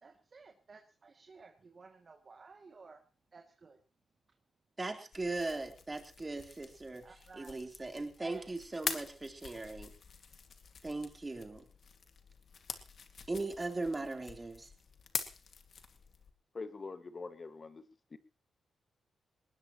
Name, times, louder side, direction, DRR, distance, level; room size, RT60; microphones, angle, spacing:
voice 1, 0.0-3.0 3.3-3.8 7.0-7.5 7.9-8.5, right 4 dB, 45° right, 2 dB, 2.5 m, -55 dB
voice 2, 4.8-9.9 10.8-11.6 13.3-14.7, right 2 dB, 25° right, 3 dB, 3.8 m, -39 dB
sound 1, 5.1-16.3, left 5 dB, 60° left, 2.2 m, -45 dB
voice 3, 16.5-17.8 18.1-18.2, left 4 dB, 45° left, 10 dB, 1.9 m, -44 dB
20.5 x 19.5 x 3.1 m, 0.34 s
cardioid pair, 65°, 0 cm